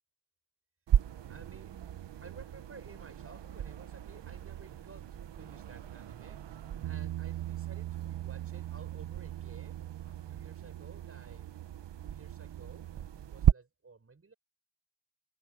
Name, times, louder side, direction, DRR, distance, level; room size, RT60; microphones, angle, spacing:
sound 1, 0.9-13.5, right 10 dB, 85° right, 1.2 m, -35 dB
voice 1, 1.3-1.8 2.2-6.4 6.8-11.6 12.0-14.3, right 4 dB, 35° right, 7.8 m, -54 dB
Bass guitar, 6.8-13.1, right 14 dB, 70° right, 0.8 m, -41 dB
wide cardioid pair, 145°, 41 cm